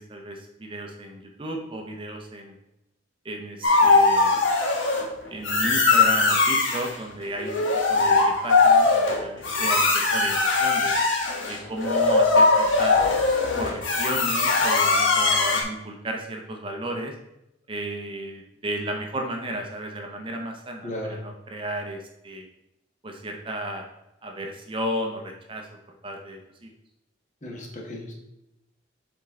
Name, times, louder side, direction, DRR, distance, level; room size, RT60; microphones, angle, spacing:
voice 1, 0.0-2.5 3.2-4.4 5.3-7.6 7.9-10.9 11.4-13.0 13.6-17.2 17.7-22.5 23.0-23.8 24.2-25.7 26.0-26.7, right 1 dB, 25° right, 2 dB, 0.7 m, -33 dB
sound 1, 3.6-5.1 5.5-6.9 7.4-15.6, left 3 dB, 75° left, 1.2 m, -20 dB
voice 2, 20.8-21.2 27.4-28.1, left 1 dB, 40° left, -1 dB, 1.5 m, -35 dB
7.3 x 4.4 x 3.7 m, 0.88 s
head